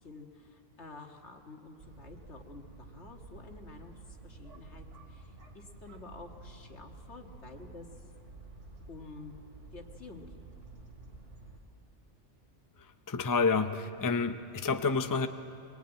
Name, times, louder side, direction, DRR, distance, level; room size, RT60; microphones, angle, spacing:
voice 1, 0.0-8.0 8.9-9.3 9.7-10.4, left 3 dB, 75° left, 2 dB, 2.2 m, -50 dB
sound 1, 1.8-11.6, right 3 dB, 90° right, 2.8 m, -51 dB
voice 2, 13.1-15.3, left 4 dB, 20° left, 8 dB, 0.6 m, -29 dB
24.0 x 22.0 x 9.0 m, 2.6 s
omnidirectional pair, 1.2 m